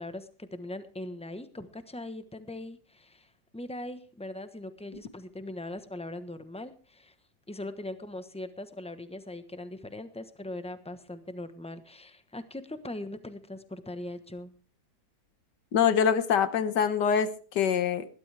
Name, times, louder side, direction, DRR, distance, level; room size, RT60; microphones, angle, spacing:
voice 1, 0.0-7.1 7.5-14.5, left 1 dB, 5° left, 10 dB, 0.8 m, -40 dB
voice 2, 15.7-18.1, left 7 dB, 70° left, 12 dB, 1.8 m, -25 dB
20.5 x 12.5 x 3.4 m, 0.38 s
omnidirectional pair, 2.0 m